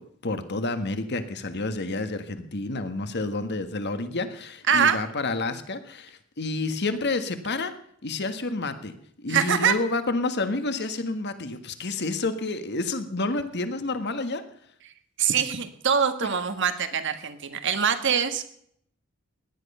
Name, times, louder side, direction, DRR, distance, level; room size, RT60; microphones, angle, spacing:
voice 1, 0.2-7.7 8.0-14.4, left 2 dB, 55° left, 10 dB, 1.5 m, -29 dB
voice 2, 4.7-5.0 9.3-9.7 15.2-18.5, right 7 dB, 60° right, 10 dB, 1.5 m, -24 dB
17.5 x 11.0 x 5.5 m, 0.67 s
head